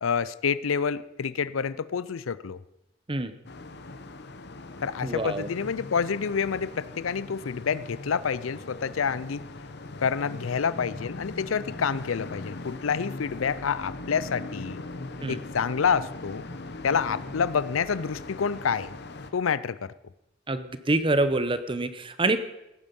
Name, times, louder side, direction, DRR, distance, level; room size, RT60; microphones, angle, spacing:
voice 1, 0.0-2.6 4.8-9.4 10.0-14.8 15.3-16.4 16.8-18.9 19.3-19.9, left 6 dB, 90° left, 18 dB, 0.5 m, -28 dB
sound 1, 3.4-19.3, left 2 dB, 55° left, 0.9 m, -40 dB
voice 2, 5.0-5.5 15.2-15.4 20.5-22.4, right 2 dB, 25° right, 12 dB, 0.8 m, -26 dB
17.0 x 9.7 x 5.3 m, 0.91 s
head